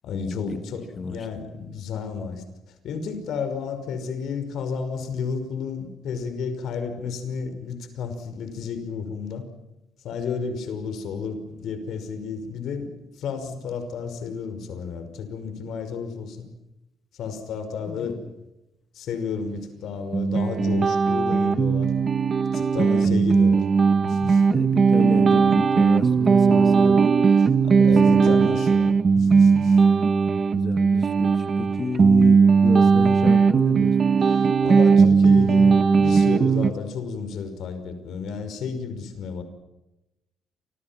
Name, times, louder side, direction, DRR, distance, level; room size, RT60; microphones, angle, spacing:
voice 1, 0.0-2.4 2.8-9.5 10.0-12.9 13.2-16.5 17.2-18.2 18.9-21.9 22.5-23.7 24.0-24.4 27.4-29.8 34.6-39.4, left 5 dB, 60° left, 9 dB, 5.6 m, -32 dB
voice 2, 1.0-1.3 17.9-18.3 23.1-23.4 24.5-27.0 27.3-27.4 27.8-28.6 30.5-34.2, left 4 dB, 25° left, 9 dB, 1.5 m, -32 dB
sound 1, 20.1-36.7, right 5 dB, 30° right, 1.0 m, -18 dB
29.5 x 27.5 x 6.0 m, 0.94 s
cardioid pair, 170°, 0 cm